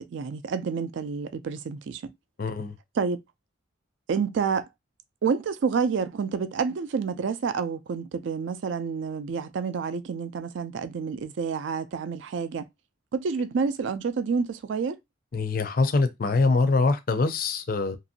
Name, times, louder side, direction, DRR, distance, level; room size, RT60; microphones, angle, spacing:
voice 1, 0.1-2.1 3.0-3.2 4.1-4.7 5.2-12.7 13.1-15.0, right 5 dB, 70° right, 0.4 m, -28 dB
voice 2, 2.4-2.8 15.3-18.0, left 3 dB, 45° left, 0.4 m, -24 dB
2.9 x 2.6 x 2.7 m
head